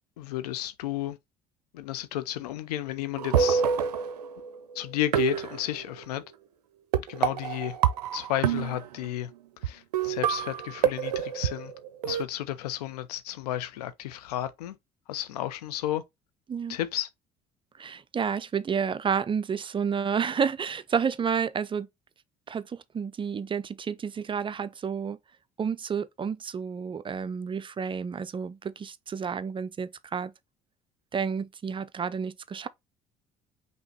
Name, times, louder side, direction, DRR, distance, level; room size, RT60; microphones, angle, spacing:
voice 1, 0.2-1.2 1.7-3.6 4.7-6.2 7.0-7.8 8.1-9.3 9.6-11.7 12.0-14.8 15.1-16.0 16.7-17.1, left 13 dB, 75° left, 0.6 m, -32 dB
sound 1, 3.2-4.6 5.1-6.0 6.9-9.1 9.6-9.7 9.9-12.2, right 8 dB, 85° right, 0.5 m, -27 dB
voice 2, 17.8-21.9 22.5-25.2 25.6-30.3 31.1-32.7, right 6 dB, 25° right, 0.4 m, -30 dB
5.6 x 2.8 x 3.1 m
figure-of-eight pair, 55°, 20 cm